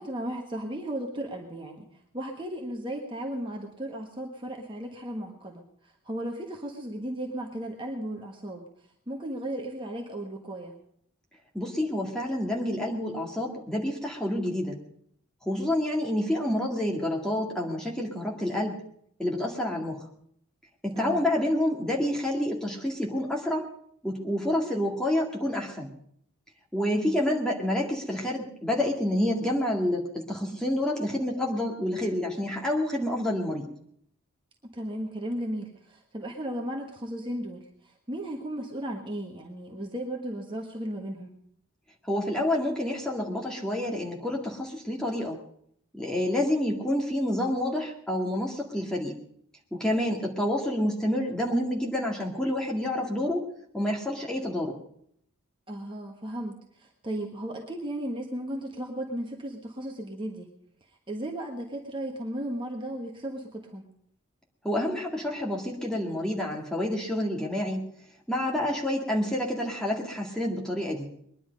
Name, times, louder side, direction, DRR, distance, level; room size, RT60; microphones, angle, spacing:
voice 1, 0.0-1.8 2.1-8.6 9.1-10.8 20.9-21.2 26.9-27.2 34.7-41.3 55.7-60.5 61.1-63.9, right 1 dB, 20° right, 0 dB, 1.5 m, -35 dB
voice 2, 11.5-14.8 15.4-18.8 19.2-20.0 20.8-23.7 24.0-25.9 26.7-33.7 42.1-45.4 45.9-49.1 49.7-53.5 53.7-54.8 64.6-67.8 68.3-71.1, left 1 dB, 5° left, -2 dB, 2.0 m, -28 dB
21.5 x 11.0 x 5.3 m, 0.67 s
head